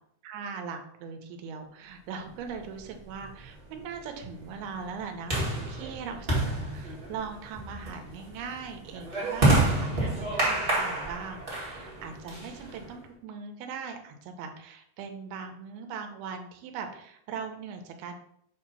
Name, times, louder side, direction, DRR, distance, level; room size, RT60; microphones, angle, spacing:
voice 1, 0.2-6.3 6.7-18.1, right 6 dB, 80° right, 5 dB, 2.6 m, -40 dB
sound 1, 2.6-13.0, right 2 dB, 40° right, 0.7 m, -29 dB
7.2 x 2.8 x 5.5 m, 0.71 s
omnidirectional pair, 4.5 m